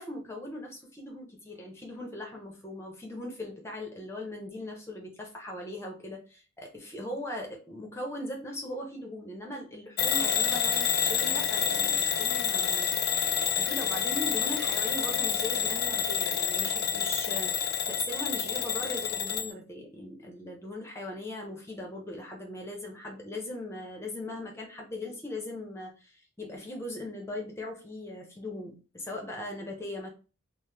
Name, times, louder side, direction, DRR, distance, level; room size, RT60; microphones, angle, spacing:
voice 1, 0.0-12.9 13.2-30.1, left 1 dB, 10° left, 0 dB, 0.7 m, -39 dB
Bell / Alarm, 10.0-19.5, left 7 dB, 50° left, 0.3 m, -28 dB
3.0 x 2.0 x 3.3 m, 0.34 s
head